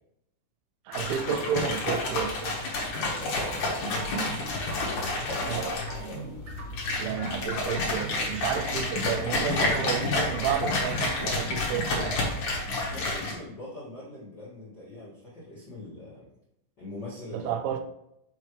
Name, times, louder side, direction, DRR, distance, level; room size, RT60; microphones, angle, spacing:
sound 1, 0.9-13.3, left 2 dB, 60° left, 2.1 m, -30 dB
voice 1, 0.9-2.6 5.4-5.7 7.0-12.3 17.3-17.8, right 9 dB, 85° right, 2.8 m, -31 dB
voice 2, 3.0-4.4 4.9-6.3 12.6-16.3 16.8-17.8, left 1 dB, 40° left, 1.5 m, -42 dB
sound 2, 3.9-13.0, left 1 dB, 55° right, 2.8 m, -39 dB
6.7 x 6.3 x 3.2 m
omnidirectional pair, 5.4 m